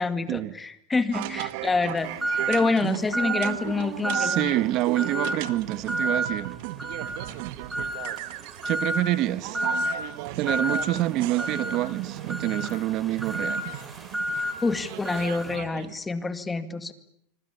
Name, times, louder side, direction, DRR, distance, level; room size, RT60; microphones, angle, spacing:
voice 1, 0.0-2.1 2.5-4.5 14.6-16.9, left 3 dB, 15° left, 11 dB, 2.2 m, -27 dB
sound 1, 1.1-15.9, right 15 dB, 65° right, 1.8 m, -36 dB
sound 2, 2.2-2.7 3.1-3.6 4.0-4.5 5.0-5.4 5.9-6.3 6.8-7.2 7.7-8.2 8.6-9.1 9.5-10.0 10.5-10.9 11.4-15.5, right 1 dB, 5° right, 3.8 m, -30 dB
voice 2, 4.1-6.6 8.6-9.8 10.4-13.7, right 15 dB, 50° right, 14 dB, 1.3 m, -27 dB
26.0 x 25.5 x 8.6 m, 0.76 s
supercardioid pair, 130°, 0 cm